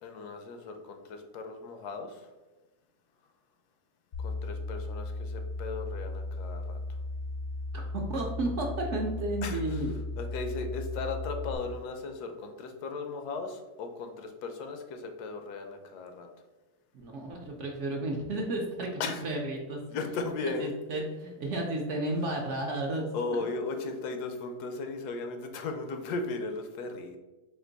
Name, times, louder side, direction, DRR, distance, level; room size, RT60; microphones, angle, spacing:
voice 1, 0.0-2.3 4.2-7.0 9.4-9.8 10.2-16.3 19.0-19.3 19.9-20.7 23.1-27.2, left 4 dB, 80° left, 5 dB, 1.1 m, -36 dB
sound 1, 4.1-11.6, left 2 dB, 55° left, 0.6 m, -36 dB
voice 2, 7.7-9.9 16.9-19.8 20.4-23.0, right 1 dB, 65° right, 0 dB, 0.8 m, -33 dB
4.4 x 2.5 x 3.9 m, 1.1 s
omnidirectional pair, 1.6 m